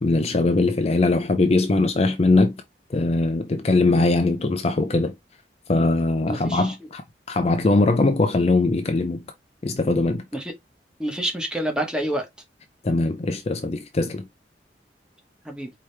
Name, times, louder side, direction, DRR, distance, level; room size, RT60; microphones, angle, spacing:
voice 1, 0.0-2.5 2.9-5.1 5.7-7.0 7.3-9.2 9.6-10.2 12.8-14.2, left 2 dB, 35° left, 0.5 m, -21 dB
voice 2, 6.3-6.7 10.3-10.5 11.0-12.3 15.4-15.7, right 1 dB, 5° right, 1.0 m, -27 dB
4.8 x 2.9 x 3.2 m
head